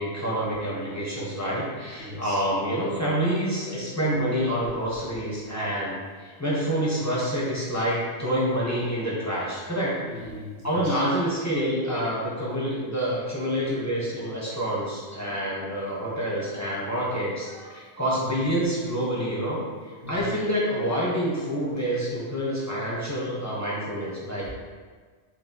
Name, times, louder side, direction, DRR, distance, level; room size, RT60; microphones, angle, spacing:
voice 1, 0.0-10.0 10.6-19.6 20.1-24.5, equal, 15° left, -7 dB, 0.7 m, -27 dB
voice 2, 1.7-2.4 10.0-11.0 14.5-14.6 16.8-17.0 17.5-17.8 18.1-18.2 20.0-20.4 24.3-24.5, left 2 dB, 80° right, -7 dB, 1.5 m, -40 dB
4.6 x 2.2 x 3.8 m, 1.5 s
omnidirectional pair, 1.3 m